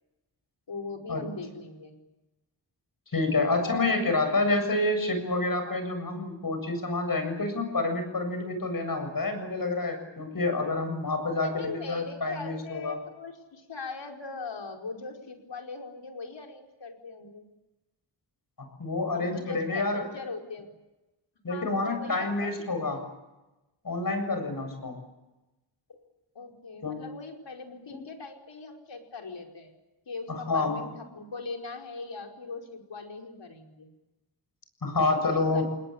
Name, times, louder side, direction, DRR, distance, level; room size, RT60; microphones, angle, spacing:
voice 1, 0.7-1.9 3.6-4.2 5.7-6.0 11.4-17.5 19.1-20.7 21.5-23.0 26.4-29.7 30.1-33.9 35.1-35.6, left 4 dB, 70° left, 2 dB, 5.1 m, -40 dB
voice 2, 3.1-13.0 18.6-20.1 21.4-23.1 23.8-25.0 26.8-27.0 30.5-30.8 34.8-35.6, left 2 dB, 50° left, 7 dB, 7.4 m, -28 dB
29.0 x 20.5 x 8.8 m, 1.0 s
wide cardioid pair, 140°, 45 cm